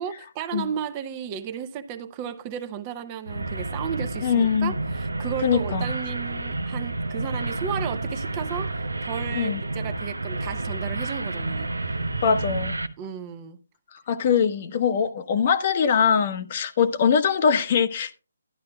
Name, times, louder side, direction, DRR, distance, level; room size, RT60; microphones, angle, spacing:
voice 1, 0.0-11.9 13.0-13.6, right 8 dB, 25° right, 0.7 m, -34 dB
sound 1, 3.3-12.9, right 2 dB, 85° right, 0.8 m, -30 dB
voice 2, 4.2-4.7 5.4-5.9 9.3-9.6 12.2-12.7 13.9-18.1, left 7 dB, 40° left, 0.9 m, -22 dB
12.0 x 10.5 x 2.3 m
figure-of-eight pair, 150°, 0 cm